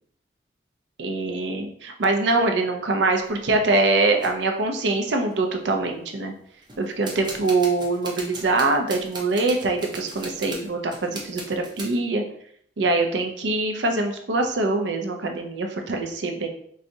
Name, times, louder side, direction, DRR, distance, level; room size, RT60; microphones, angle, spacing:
voice 1, 1.0-6.3 6.8-12.2 12.8-16.5, right 3 dB, 85° right, 4 dB, 0.5 m, -23 dB
sound 1, 3.0-3.4 4.2-4.4 5.0-5.1 5.3-5.8 6.6-12.0, right 2 dB, 25° right, 0.5 m, -38 dB
4.0 x 2.3 x 2.6 m, 0.64 s
head